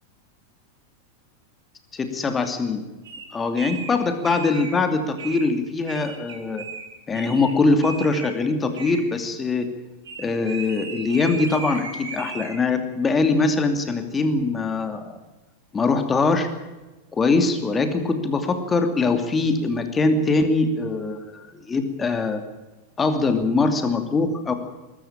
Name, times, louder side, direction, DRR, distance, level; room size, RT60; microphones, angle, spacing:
voice 1, 1.9-2.8 3.3-6.7 7.1-9.7 10.2-15.1 15.7-16.5 17.1-22.4 23.0-24.5, left 3 dB, 15° left, 7 dB, 2.7 m, -22 dB
sound 1, 3.0-3.2 3.6-3.9 4.2-4.8 5.2-5.5 5.8-6.9 7.1-7.5 7.8-8.4 8.7-9.0 10.0-12.6, right 5 dB, 65° right, 4.7 m, -36 dB
21.0 x 13.5 x 8.9 m, 1.1 s
figure-of-eight pair, 90°, 0 cm